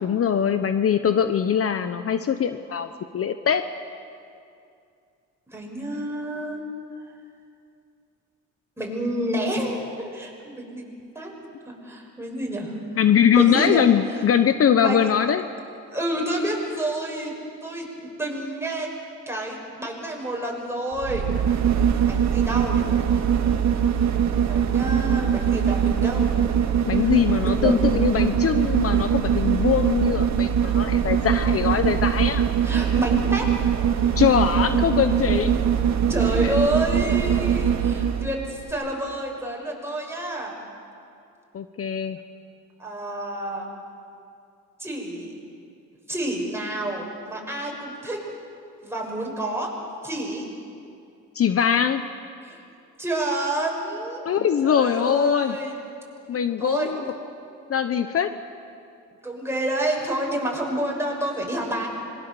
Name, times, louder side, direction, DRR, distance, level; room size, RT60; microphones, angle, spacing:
voice 1, 0.0-3.6 13.0-15.4 26.9-32.5 34.2-35.7 36.4-36.5 41.5-42.2 51.3-52.0 54.2-55.6 56.3-57.0 57.7-58.3, left 8 dB, 50° left, 10 dB, 1.0 m, -22 dB
voice 2, 5.5-6.6 8.8-10.8 11.1-11.3 11.7-12.7 13.3-14.2 14.7-15.1 15.9-17.3 17.6-18.9 19.3-21.2 22.0-22.9 24.4-26.4 27.0-27.1 27.4-27.9 32.6-33.6 36.1-40.6 42.8-43.7 44.8-45.3 46.1-48.2 48.8-49.7 50.0-50.4 52.4-52.6 53.0-54.3 54.6-55.8 56.6-57.1 59.2-61.9, right 1 dB, 10° right, -1 dB, 6.2 m, -29 dB
sound 1, 20.9-38.3 38.7-38.8, right 8 dB, 65° right, 1.8 m, -22 dB
26.0 x 22.0 x 7.1 m, 2.5 s
cardioid pair, 90°, 30 cm